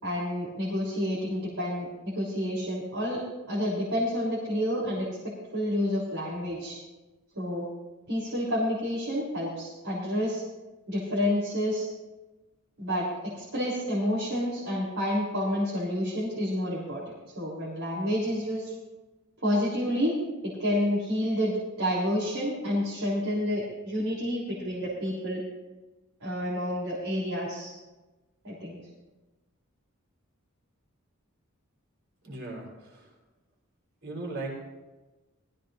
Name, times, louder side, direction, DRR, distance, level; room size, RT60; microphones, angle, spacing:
voice 1, 0.0-3.2 3.5-6.8 7.3-7.7 8.1-10.4 10.9-11.9 12.8-17.0 17.4-18.7 19.4-20.2 20.4-25.4 26.2-27.7 28.4-28.8, equal, 80° right, -7 dB, 3.7 m, -29 dB
voice 2, 32.2-33.1 34.0-34.5, right 2 dB, 60° right, -2 dB, 4.2 m, -37 dB
20.0 x 14.5 x 2.7 m, 1.2 s
head